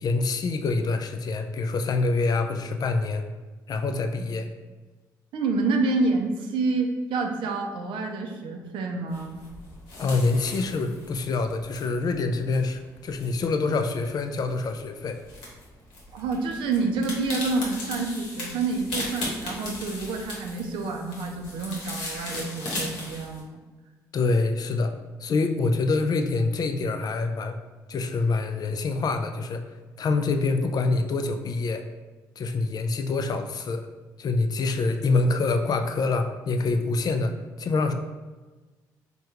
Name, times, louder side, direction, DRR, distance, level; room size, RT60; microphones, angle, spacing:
voice 1, 0.0-3.3 3.7-4.5 10.0-15.2 24.1-24.9 25.2-27.6 27.9-29.6 30.0-31.8 32.4-33.9 34.2-37.9, left 3 dB, 50° left, 7 dB, 0.3 m, -26 dB
voice 2, 5.3-9.4 16.1-23.6, right 3 dB, 75° right, 3 dB, 0.4 m, -28 dB
sound 1, 9.1-23.4, left 2 dB, 80° left, 0.8 m, -38 dB
3.5 x 2.2 x 2.9 m, 1.3 s
supercardioid pair, 55°, 9 cm